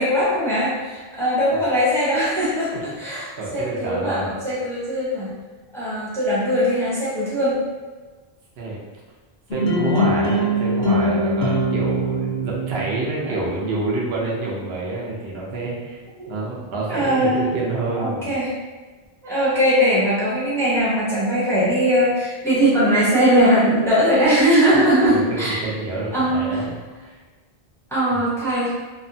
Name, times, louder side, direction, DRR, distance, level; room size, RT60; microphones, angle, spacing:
voice 1, 0.0-5.3 5.7-7.6 13.3-13.4 16.2-16.3 16.9-17.5 18.0-18.5 19.2-25.6 26.1-26.6 27.9-28.7, equal, 5° left, -9 dB, 0.6 m, -20 dB
voice 2, 3.4-4.3 8.6-8.8 9.5-16.0 16.3-18.3 25.1-26.8 28.1-28.2, right 2 dB, 75° right, -4 dB, 0.8 m, -27 dB
sound 1, 9.5-13.5, equal, 70° left, 0.8 m, -22 dB
2.8 x 2.1 x 2.5 m, 1.3 s
omnidirectional pair, 1.1 m